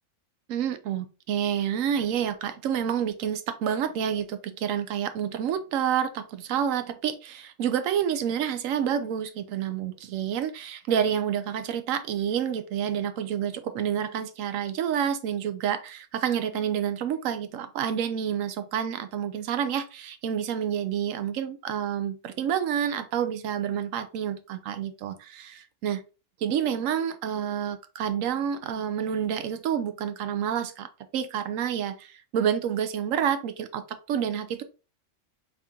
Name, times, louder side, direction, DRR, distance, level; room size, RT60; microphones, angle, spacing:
voice 1, 0.5-26.0 26.4-34.6, right 8 dB, 85° right, 1.0 m, -29 dB
3.6 x 3.6 x 2.7 m
omnidirectional pair, 1.3 m